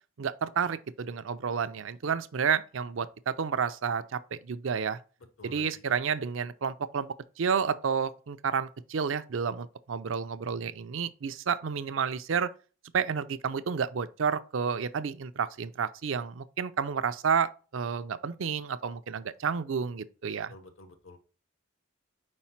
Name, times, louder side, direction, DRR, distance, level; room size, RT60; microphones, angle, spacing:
voice 1, 0.2-5.0 5.4-12.5 12.9-20.5, right 6 dB, 70° right, 0.5 m, -30 dB
voice 2, 5.4-5.8 20.5-21.2, left 1 dB, 80° left, 1.1 m, -50 dB
4.9 x 4.2 x 5.7 m
head